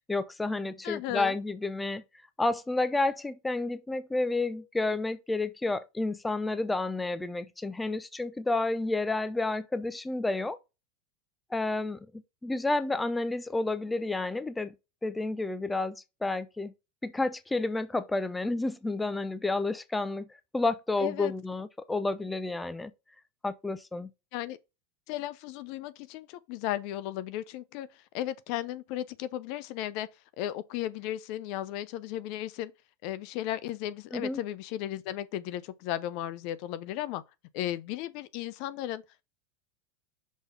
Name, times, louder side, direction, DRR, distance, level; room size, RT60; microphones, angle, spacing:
voice 1, 0.0-2.0 2.4-10.6 11.5-14.7 15.0-16.0 16.2-16.7 17.0-20.3 20.5-22.9 23.4-24.1 34.1-34.4, left 2 dB, 10° left, 0.7 m, -30 dB
voice 2, 0.8-1.3 21.0-21.3 24.3-24.6 25.1-30.1 30.4-32.7 33.0-37.2 37.5-39.0, left 13 dB, 60° left, 0.6 m, -35 dB
6.3 x 3.5 x 5.3 m
hypercardioid pair, 100°, 0 cm